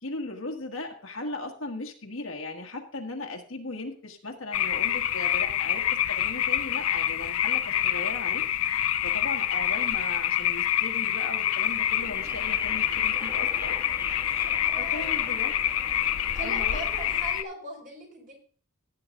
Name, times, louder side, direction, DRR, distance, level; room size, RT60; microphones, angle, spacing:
voice 1, 0.0-8.4 9.0-13.7 14.3-15.5 16.3-16.8, left 2 dB, 70° left, 2 dB, 1.5 m, -37 dB
sound 1, 4.5-17.4, left 11 dB, 85° left, 0.5 m, -27 dB
sound 2, 12.0-17.3, left 1 dB, 10° right, 1.9 m, -42 dB
voice 2, 14.6-15.3 16.3-18.3, right 2 dB, 40° right, 1 dB, 4.2 m, -40 dB
16.5 x 8.9 x 2.5 m, 0.43 s
head